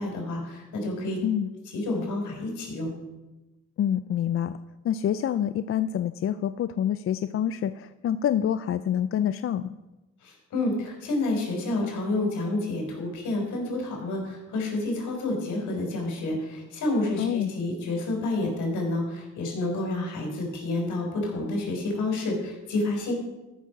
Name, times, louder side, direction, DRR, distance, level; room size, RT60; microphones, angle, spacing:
voice 1, 0.0-1.2 1.7-2.9 10.2-23.1, left 2 dB, 75° left, 1 dB, 4.3 m, -29 dB
voice 2, 3.8-4.6 4.8-9.8 17.2-17.5, left 9 dB, 45° left, 12 dB, 0.4 m, -27 dB
13.5 x 6.3 x 5.9 m, 1.0 s
cardioid pair, 90°, 30 cm